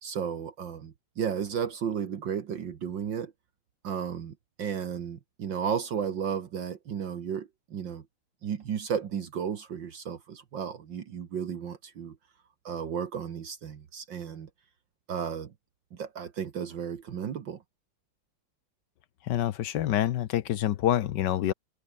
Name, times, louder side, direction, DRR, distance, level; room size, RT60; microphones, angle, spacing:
voice 1, 0.0-3.3 3.8-8.0 8.4-12.2 12.7-14.5 15.1-15.5 16.0-17.6, right 7 dB, 65° right, 2.1 m, -33 dB
voice 2, 19.2-21.5, left 12 dB, 65° left, 1.3 m, -27 dB
omnidirectional pair, 2.3 m